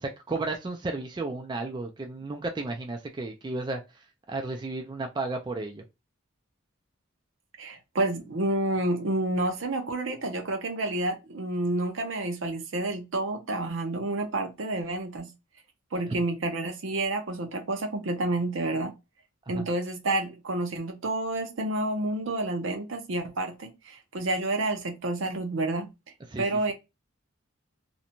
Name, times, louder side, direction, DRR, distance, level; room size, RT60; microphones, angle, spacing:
voice 1, 0.0-3.8 4.3-5.8 16.1-16.2 19.6-19.7 26.3-26.4, right 3 dB, 20° right, 0.3 m, -33 dB
voice 2, 7.6-15.3 15.9-18.9 19.5-25.9 26.4-26.7, right 2 dB, 65° right, 0.6 m, -29 dB
2.5 x 2.1 x 2.8 m
head